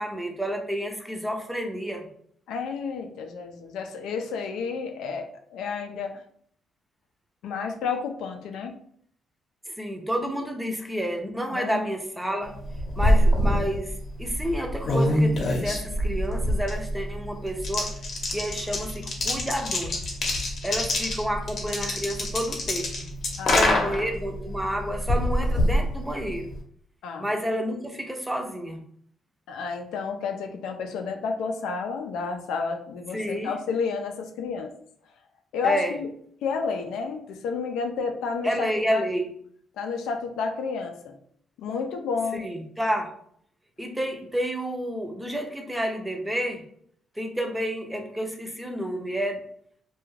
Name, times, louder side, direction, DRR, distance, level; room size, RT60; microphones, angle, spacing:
voice 1, 0.0-2.0 9.7-12.6 12.9-13.9 14.2-17.9 18.3-20.0 20.6-23.1 23.5-26.5 27.2-28.8 33.1-33.5 35.6-35.9 38.4-39.3 42.3-43.1 43.8-46.6 47.2-49.4, equal, 5° right, 3 dB, 0.5 m, -30 dB
voice 2, 2.5-6.1 7.4-8.8 11.5-11.8 23.4-23.9 27.0-27.3 29.5-34.7 35.5-36.1 36.4-39.0 39.8-41.1 41.6-42.5, left 5 dB, 85° left, 5 dB, 0.4 m, -31 dB
sound 1, 12.5-26.6, left 1 dB, 60° left, 0.7 m, -26 dB
2.3 x 2.3 x 3.1 m, 0.63 s
cardioid pair, 90°, 0 cm